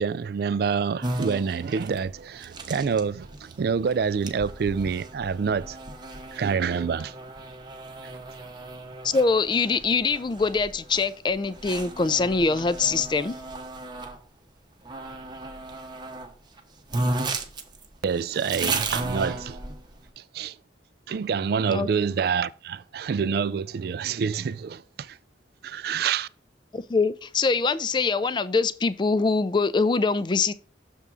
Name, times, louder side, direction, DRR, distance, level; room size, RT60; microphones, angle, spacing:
voice 1, 0.0-5.8 6.3-7.1 18.0-19.6 20.3-20.6 21.1-25.2 25.6-26.3, right 6 dB, 55° right, 0.3 m, -27 dB
sound 1, 1.0-14.2 14.9-16.3 16.6-16.7 16.9-20.0, right 2 dB, 25° right, 0.8 m, -34 dB
voice 2, 9.0-13.4 21.7-21.9 26.7-30.5, left 4 dB, 25° left, 0.3 m, -23 dB
6.8 x 3.6 x 6.1 m
head